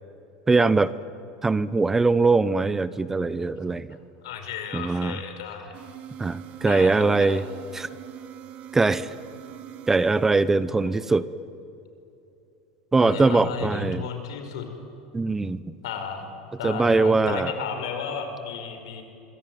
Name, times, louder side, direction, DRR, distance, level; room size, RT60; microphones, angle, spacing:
voice 1, 0.5-0.9 1.4-4.0 4.7-5.2 6.2-7.4 7.7-7.9 8.7-9.1 9.9-11.3 12.9-14.1 15.1-15.8 16.6-17.5, right 3 dB, 15° right, 17 dB, 0.8 m, -22 dB
voice 2, 4.2-5.7 6.6-6.9 7.2-7.4 13.0-14.7 15.8-16.3 16.6-19.0, left 6 dB, 85° left, 6 dB, 5.2 m, -33 dB
sound 1, 5.7-11.0, right 10 dB, 50° right, 2.0 m, -43 dB
25.5 x 24.0 x 9.4 m, 2.7 s
supercardioid pair, 115°, 3 cm